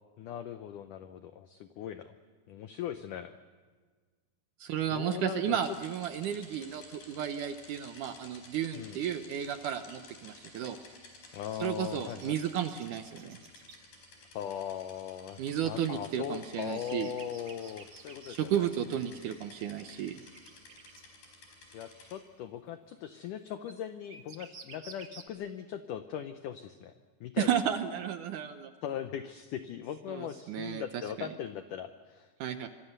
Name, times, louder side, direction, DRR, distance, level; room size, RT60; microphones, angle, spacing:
voice 1, 0.2-2.1 2.5-3.4 4.8-5.6 8.7-9.0 11.3-12.4 14.3-18.7 19.1-19.4 21.7-26.9 27.2-27.5 28.8-32.3, left 9 dB, 80° left, 9 dB, 1.8 m, -39 dB
voice 2, 4.6-10.8 11.6-13.4 15.4-17.1 18.3-20.2 27.4-28.7 30.1-31.3 32.4-32.7, right 9 dB, 75° right, 8 dB, 1.9 m, -33 dB
sound 1, 5.6-22.1, left 3 dB, 65° left, 6.5 m, -54 dB
sound 2, 9.5-9.6 10.1-10.2 11.3-13.8 15.4-18.3 19.6-19.7 20.2-21.0 23.0-25.3, right 5 dB, 60° right, 1.2 m, -52 dB
26.0 x 23.5 x 6.7 m, 1.5 s
omnidirectional pair, 4.7 m